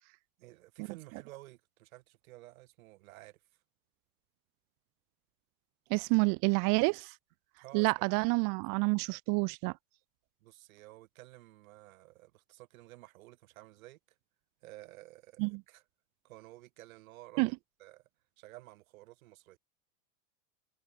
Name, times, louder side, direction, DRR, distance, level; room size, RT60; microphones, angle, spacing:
voice 1, 0.4-3.4 7.6-8.2 10.4-14.0 14.6-15.8 16.2-17.5 17.8-18.0 18.4-19.6, right 18 dB, 80° right, 6.2 m, -53 dB
voice 2, 5.9-7.1 7.7-9.7 15.4-15.6 17.4-17.5, right 30 dB, 50° right, 1.3 m, -28 dB
supercardioid pair, 135°, 41 cm